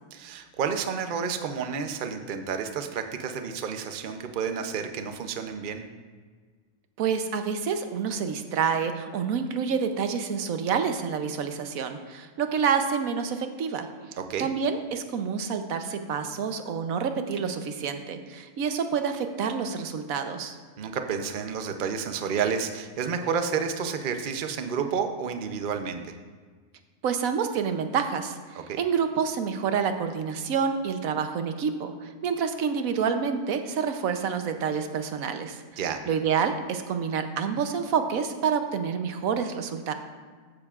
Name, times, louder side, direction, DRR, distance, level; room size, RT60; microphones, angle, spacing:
voice 1, 0.1-5.8 14.2-14.5 20.8-26.1 28.6-28.8 35.8-36.0, right 6 dB, 50° right, 6 dB, 0.7 m, -30 dB
voice 2, 7.0-20.6 27.0-35.6 36.1-39.9, right 6 dB, 90° right, 7 dB, 1.2 m, -28 dB
14.0 x 9.8 x 2.4 m, 1.5 s
omnidirectional pair, 1.4 m